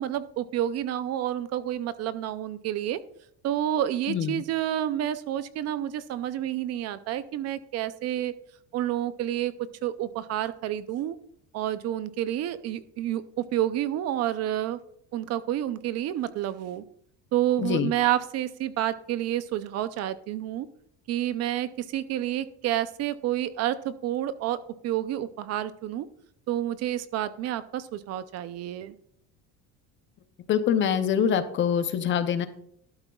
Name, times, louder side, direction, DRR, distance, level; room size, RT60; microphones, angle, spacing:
voice 1, 0.0-3.0 3.4-8.3 8.7-9.5 9.8-11.2 11.5-14.8 15.1-16.8 17.3-20.7 21.1-26.1 26.5-28.9, right 12 dB, 45° right, 14 dB, 0.5 m, -29 dB
voice 2, 4.1-4.4 17.6-17.9 30.5-32.5, left 8 dB, 30° left, 10 dB, 0.6 m, -25 dB
12.0 x 12.0 x 2.3 m, 0.70 s
cardioid pair, 170°, 37 cm